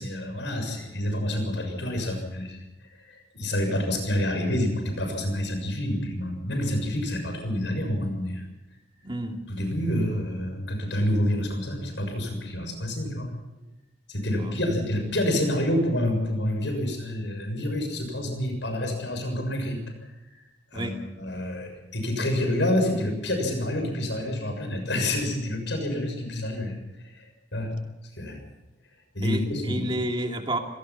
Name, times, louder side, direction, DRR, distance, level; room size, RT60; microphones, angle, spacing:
voice 1, 0.0-8.5 9.5-13.3 14.1-20.1 20.7-26.8 27.1-27.8 28.2-28.4 29.1-29.9, left 1 dB, 70° left, 5 dB, 6.7 m, -28 dB
voice 2, 9.0-9.4 14.4-14.6 20.7-21.0 29.2-30.6, right 1 dB, 25° right, 3 dB, 2.7 m, -30 dB
25.0 x 18.0 x 5.9 m, 1.0 s
head